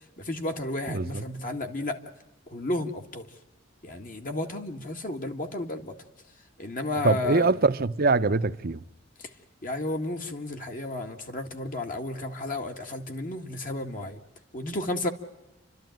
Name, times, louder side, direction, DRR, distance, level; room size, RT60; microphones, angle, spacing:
voice 1, 0.2-2.0 2.5-3.3 3.8-6.0 6.6-7.5 9.2-9.3 9.6-14.2 14.5-15.1, left 2 dB, 45° left, 2.0 m, -32 dB
voice 2, 0.9-1.2 7.0-8.8, right 3 dB, 50° right, 0.8 m, -23 dB
29.5 x 13.0 x 9.2 m
head